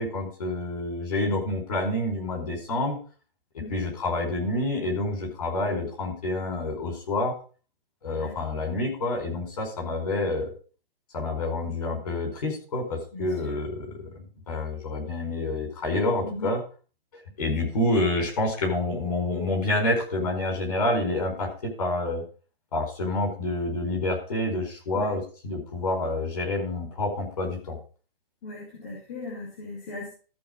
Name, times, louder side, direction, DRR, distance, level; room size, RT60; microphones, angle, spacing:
voice 1, 0.0-3.0 3.7-7.3 8.0-10.5 11.1-16.6 17.4-22.2 22.7-27.8, left 2 dB, 40° left, 0 dB, 4.6 m, -28 dB
voice 2, 13.1-13.5 16.2-16.5 24.9-25.1 28.4-30.1, left 2 dB, 15° left, -5 dB, 2.0 m, -38 dB
13.5 x 5.2 x 5.2 m, 0.38 s
hypercardioid pair, 180°, 29 cm